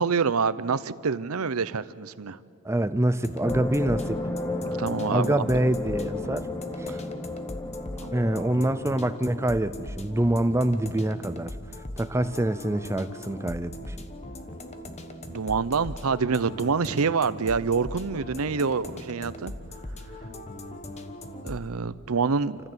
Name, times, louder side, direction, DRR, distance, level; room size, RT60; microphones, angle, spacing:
voice 1, 0.0-2.4 4.6-5.4 6.9-7.0 8.0-8.1 15.3-19.5 21.4-22.6, right 5 dB, 70° right, 16 dB, 0.7 m, -26 dB
voice 2, 2.6-4.2 5.1-6.5 6.8-7.0 8.1-11.5 12.0-14.1, right 1 dB, 10° right, 13 dB, 0.5 m, -25 dB
sound 1, 3.2-21.7, left 1 dB, 30° left, 1.2 m, -40 dB
sound 2, 3.4-9.8, left 2 dB, 10° left, 1.0 m, -33 dB
28.0 x 15.0 x 8.1 m, 2.3 s
head